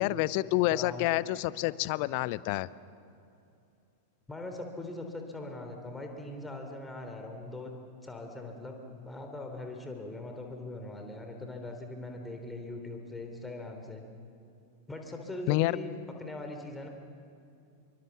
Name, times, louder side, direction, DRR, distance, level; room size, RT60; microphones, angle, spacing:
voice 1, 0.0-2.7 15.5-15.8, left 18 dB, 45° left, 20 dB, 0.6 m, -28 dB
voice 2, 0.7-1.2 4.3-14.0 14.9-16.9, left 2 dB, 10° left, 3 dB, 3.6 m, -41 dB
26.0 x 24.0 x 7.2 m, 2.6 s
figure-of-eight pair, 95°, 0 cm